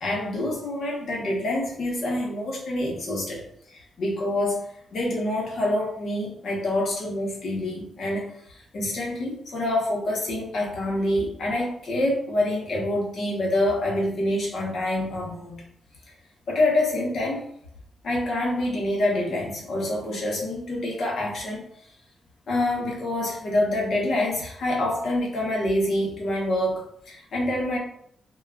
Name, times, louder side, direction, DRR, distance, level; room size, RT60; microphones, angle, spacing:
voice 1, 0.0-3.4 3.7-4.6 4.9-8.2 8.7-15.6 16.5-17.4 18.0-21.7 22.5-27.8, left 1 dB, 65° left, -2 dB, 1.0 m, -26 dB
3.5 x 2.3 x 2.3 m, 0.68 s
cardioid pair, 120°, 0 cm